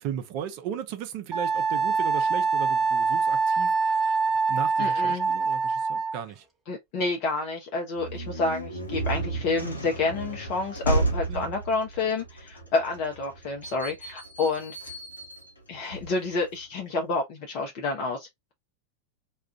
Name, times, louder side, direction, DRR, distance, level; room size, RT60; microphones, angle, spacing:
voice 1, 0.0-4.2 4.5-6.4 11.3-11.5, right 9 dB, 45° right, 0.6 m, -36 dB
Wind instrument woodwind instrument, 1.3-6.2, right 4 dB, 10° right, 1.0 m, -24 dB
voice 2, 4.8-5.3 6.7-14.9 15.7-18.5, left 3 dB, 45° left, 0.6 m, -29 dB
sound 1, 7.9-16.6, right 2 dB, 80° left, 0.7 m, -33 dB
2.4 x 2.3 x 3.3 m
figure-of-eight pair, 90°, 0 cm